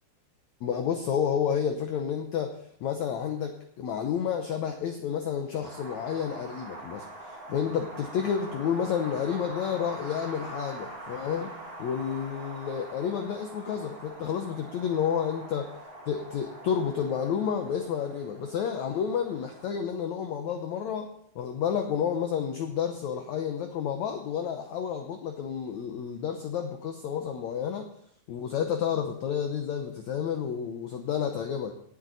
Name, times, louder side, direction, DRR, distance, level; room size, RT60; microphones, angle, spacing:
voice 1, 0.6-11.5 11.8-15.7 16.1-27.9 28.3-31.7, left 8 dB, 80° left, 6 dB, 1.6 m, -30 dB
Wind, 5.6-19.7, right 2 dB, 25° right, 1.3 m, -44 dB
18.5 x 7.7 x 4.0 m, 0.69 s
omnidirectional pair, 4.5 m